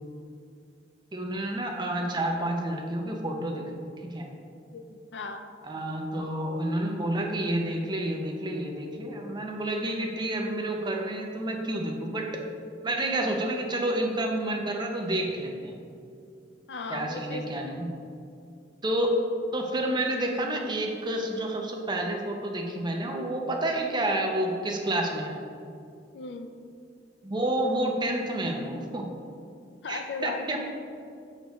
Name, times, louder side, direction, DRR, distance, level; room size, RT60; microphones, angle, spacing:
voice 1, 1.1-3.7 4.0-4.3 5.6-12.4 12.8-15.8 16.9-17.9 18.8-19.2 19.5-25.4 27.2-29.1 29.9-30.7, right 1 dB, 25° right, 2 dB, 0.7 m, -29 dB
voice 2, 4.7-5.4 16.7-17.4 26.1-26.5 29.8-30.5, left 3 dB, 70° left, 7 dB, 0.5 m, -36 dB
6.8 x 6.6 x 3.1 m, 2.4 s
head